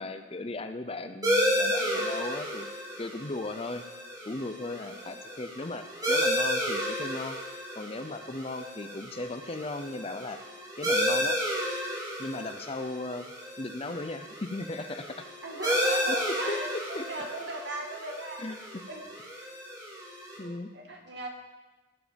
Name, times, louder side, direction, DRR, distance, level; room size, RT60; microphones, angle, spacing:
voice 1, 0.0-2.7 3.0-3.8 4.2-7.4 7.8-10.4 10.8-11.4 12.2-13.3 13.6-15.3 16.1-16.2 16.5-17.3 18.4-18.6 20.4-20.7, left 2 dB, 30° left, 9 dB, 0.6 m, -37 dB
sound 1, 1.2-20.4, equal, 20° right, 2.3 m, -32 dB
voice 2, 15.4-18.6 18.9-19.5 20.4-21.3, right 2 dB, 60° right, 1 dB, 2.2 m, -38 dB
18.5 x 7.6 x 5.2 m, 1.2 s
head